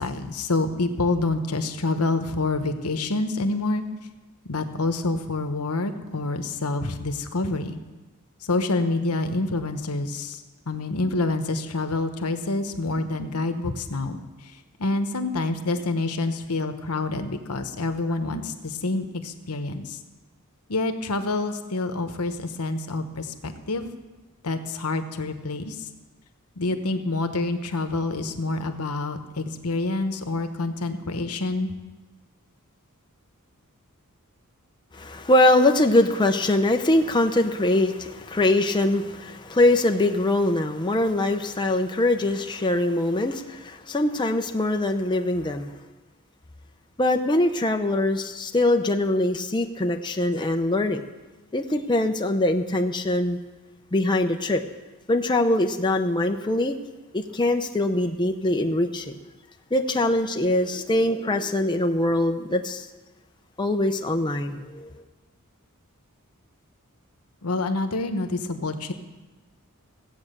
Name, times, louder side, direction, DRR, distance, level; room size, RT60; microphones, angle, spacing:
voice 1, 0.0-3.8 4.4-7.8 8.4-14.2 14.8-20.0 20.7-23.9 24.4-25.9 26.6-31.7 67.4-68.9, left 2 dB, 80° left, 8 dB, 1.1 m, -27 dB
voice 2, 34.9-45.7 47.0-51.0 51.5-53.4 53.9-54.6 55.1-56.8 57.1-59.2 59.7-62.9 63.6-64.9, left 1 dB, 20° left, 4 dB, 0.6 m, -23 dB
15.5 x 8.5 x 6.7 m, 1.2 s
head